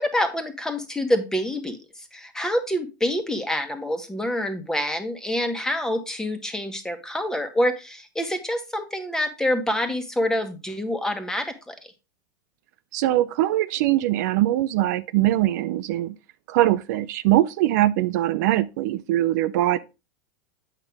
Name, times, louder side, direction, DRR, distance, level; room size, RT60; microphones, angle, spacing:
voice 1, 0.0-11.7, left 1 dB, 5° left, 1.4 m, -26 dB
voice 2, 12.9-16.1 16.5-19.8, right 14 dB, 65° right, 0.5 m, -22 dB
8.0 x 5.7 x 3.5 m
hypercardioid pair, 105°, 10 cm